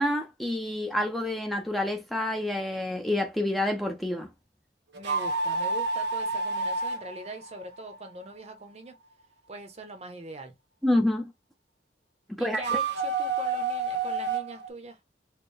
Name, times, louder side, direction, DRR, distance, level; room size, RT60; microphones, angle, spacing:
voice 1, 0.0-4.3 10.8-11.3 12.3-12.6, left 1 dB, ahead, 0.5 m, -28 dB
voice 2, 4.9-8.9 9.5-10.5 12.4-15.0, right 1 dB, 35° right, 0.7 m, -42 dB
sound 1, 4.9-8.2 12.6-14.7, right 3 dB, 80° right, 1.0 m, -29 dB
4.4 x 2.1 x 3.2 m
head